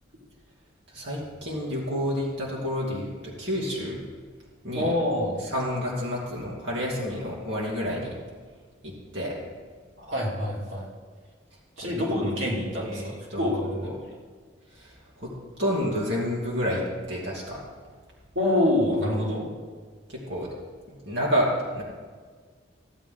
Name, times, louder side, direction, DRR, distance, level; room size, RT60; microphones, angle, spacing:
voice 1, 0.9-4.0 4.6-4.9 5.4-8.2 8.8-9.4 11.8-12.2 12.8-13.9 14.7-15.3 15.6-17.6 20.1-20.5 20.9-21.8, equal, 60° right, -5 dB, 2.7 m, -30 dB
voice 2, 4.7-5.5 10.0-10.9 11.8-13.7 18.3-19.5, left 1 dB, 90° right, -4 dB, 2.8 m, -26 dB
15.5 x 8.6 x 3.8 m, 1.5 s
head